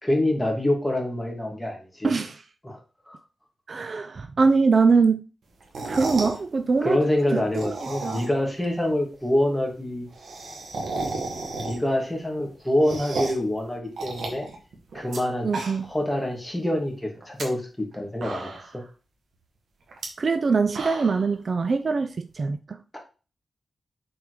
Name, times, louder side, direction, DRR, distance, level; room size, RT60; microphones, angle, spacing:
voice 1, 0.0-2.1 2.6-2.8 3.1-3.2 6.8-10.0 11.6-14.5 14.9-15.5 15.9-18.8 22.9-23.0, left 1 dB, 10° left, 2.4 m, -26 dB
voice 2, 2.0-2.4 3.7-5.2 5.9-7.0 7.3-8.2 15.4-15.9 20.2-22.8, right 4 dB, 50° right, 0.6 m, -23 dB
sound 1, 5.6-6.4 7.4-8.5 8.8-8.9 9.1-9.2 9.5-9.6 9.8-12.0 12.4-13.5 14.0-15.2 15.4-16.0 16.4-16.5 17.2-17.4 17.9-18.0 18.2-18.8 19.9-20.1 20.5-21.3, right 3 dB, 85° right, 2.2 m, -33 dB
7.2 x 4.5 x 5.0 m
wide cardioid pair, 100°, 0 cm